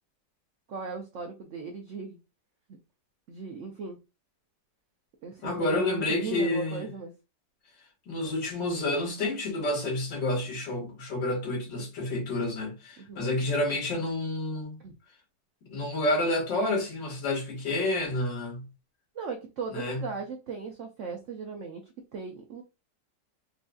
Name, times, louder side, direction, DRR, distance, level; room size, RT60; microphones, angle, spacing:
voice 1, 0.7-2.2 3.3-4.0 5.2-7.1 13.0-13.2 14.8-14.9 19.2-21.8 22.1-22.6, right 4 dB, 85° right, 0.6 m, -37 dB
voice 2, 5.4-6.9 8.1-14.8 15.7-18.7 19.7-20.0, left 2 dB, 90° left, 2.1 m, -29 dB
4.7 x 2.6 x 2.3 m
omnidirectional pair, 1.9 m